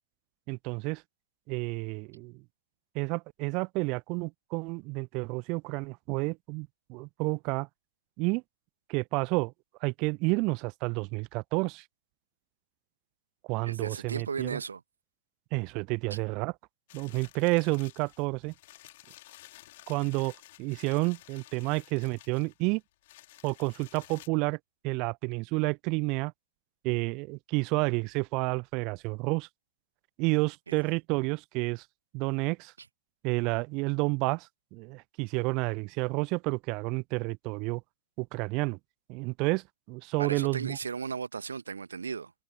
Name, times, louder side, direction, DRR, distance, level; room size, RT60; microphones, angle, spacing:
voice 1, 0.5-1.0 1.5-2.4 2.9-7.7 8.2-8.4 8.9-9.5 9.8-11.8 13.5-14.6 15.5-16.5 16.9-18.5 19.9-20.3 20.6-22.8 23.4-24.6 24.8-26.3 26.8-29.5 30.2-31.8 32.1-32.7 33.2-37.8 38.2-38.8 39.1-40.8, right 28 dB, 40° right, 0.8 m, -30 dB
voice 2, 13.6-14.8 16.1-16.2 30.7-30.8 40.2-42.3, right 5 dB, 75° right, 1.5 m, -36 dB
sound 1, 16.9-24.3, left 17 dB, 55° left, 4.7 m, -53 dB
figure-of-eight pair, 90°, 0 cm